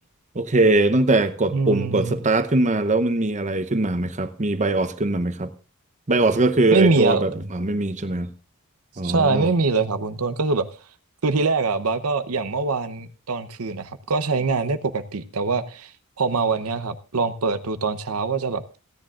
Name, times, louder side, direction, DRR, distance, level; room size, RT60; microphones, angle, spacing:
voice 1, 0.3-5.5 6.1-8.3 9.0-9.5, right 2 dB, 35° right, 0.8 m, -21 dB
voice 2, 1.5-2.1 6.7-7.2 9.0-10.7 11.2-15.9 16.2-18.8, right 4 dB, 75° right, 0.9 m, -23 dB
28.0 x 10.0 x 2.5 m
head